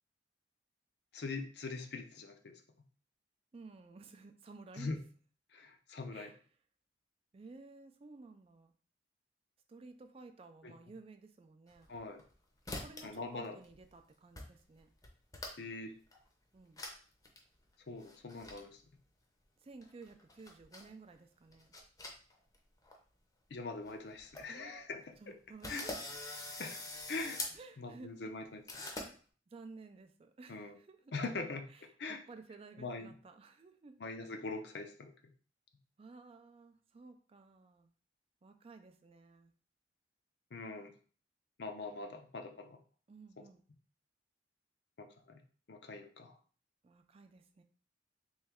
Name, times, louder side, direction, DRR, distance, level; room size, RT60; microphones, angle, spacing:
voice 1, 1.1-2.6 4.8-5.0 5.5-6.3 10.6-10.7 11.9-12.2 13.0-13.6 15.6-15.9 17.9-18.8 23.5-25.3 25.7-25.9 26.6-26.8 27.1-27.4 27.8-28.6 30.5-30.8 31.1-32.2 32.8-33.1 34.0-35.1 40.5-40.9 41.6-42.8 43.4-43.5 45.0-45.4 45.7-46.4, left 3 dB, 65° left, 5 dB, 0.5 m, -42 dB
voice 2, 3.5-4.9 6.1-6.4 7.3-8.7 9.7-11.9 12.8-14.9 16.5-16.8 19.6-21.8 24.5-24.7 25.2-25.9 27.5-28.3 29.5-31.1 31.7-34.0 36.0-37.9 38.4-39.5 43.1-43.6 46.8-47.6, right 3 dB, 35° right, 8 dB, 0.3 m, -54 dB
sound 1, 11.7-12.3 12.7-13.2 13.4-14.0 14.4-14.5 14.8-15.8 16.1-16.2 16.8-17.0 17.2-17.4 18.0-18.6 19.8-20.9 21.5-22.6 22.8-23.0 23.5-23.6 23.9-24.0 24.2-24.4 24.9-25.0 25.6-27.6 28.7-29.1, left 2 dB, 20° left, 0.6 m, -44 dB
3.3 x 3.1 x 3.5 m, 0.42 s
head